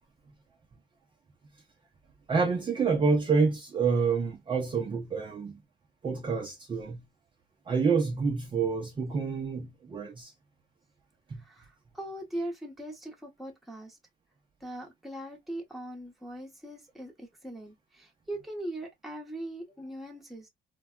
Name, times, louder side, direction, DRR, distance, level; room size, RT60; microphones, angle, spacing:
voice 1, 2.3-5.6 6.0-7.1 7.7-10.3 11.3-11.4, right 5 dB, 30° right, 0.6 m, -28 dB
voice 2, 11.4-14.0 14.6-20.5, right 1 dB, ahead, 1.0 m, -40 dB
3.3 x 2.2 x 2.2 m
cardioid pair, 110°, 17 cm